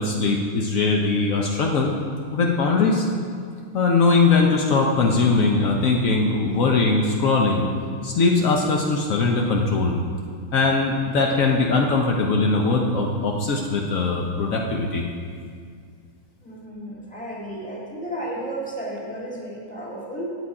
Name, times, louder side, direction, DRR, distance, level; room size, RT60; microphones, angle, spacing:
voice 1, 0.0-1.9 2.3-3.1 3.7-7.6 8.0-9.9 10.5-15.1, left 3 dB, 90° left, 0 dB, 0.7 m, -20 dB
voice 2, 16.4-20.3, right 1 dB, 5° left, -5 dB, 1.3 m, -33 dB
8.2 x 8.0 x 4.8 m, 2.1 s
omnidirectional pair, 2.3 m